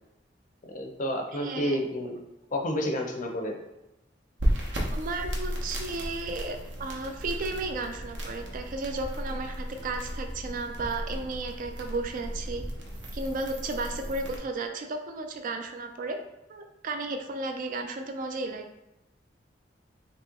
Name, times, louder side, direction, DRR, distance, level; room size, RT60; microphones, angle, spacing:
voice 1, 0.6-2.2 2.5-3.6, equal, 45° left, 2 dB, 0.5 m, -30 dB
voice 2, 1.3-1.8 4.9-12.6 13.1-16.2 16.5-18.7, right 3 dB, 45° right, 4 dB, 0.3 m, -34 dB
sound 1, 4.4-14.4, equal, 70° right, 0.8 m, -34 dB
3.0 x 2.8 x 3.6 m, 0.96 s
head